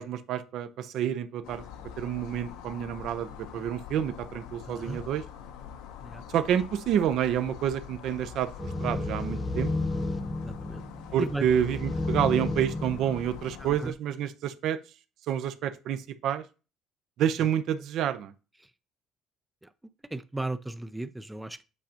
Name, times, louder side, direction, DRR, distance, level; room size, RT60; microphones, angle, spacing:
voice 1, 0.0-1.6 2.0-5.2 6.3-8.5 8.8-9.7 11.1-14.8 15.3-16.4 17.2-18.3, right 9 dB, 60° right, 11 dB, 0.7 m, -28 dB
sound 1, 1.4-13.9, left 8 dB, 90° left, 0.9 m, -45 dB
voice 2, 4.7-5.0 6.0-6.2 10.4-10.8 11.2-11.4 13.6-13.9 17.4-17.5 19.6-19.7 20.1-21.6, right 2 dB, 5° right, 12 dB, 0.4 m, -35 dB
sound 2, 8.6-13.7, left 2 dB, 10° left, 0.8 m, -32 dB
8.3 x 5.1 x 2.9 m, 0.33 s
cardioid pair, 135°, 0 cm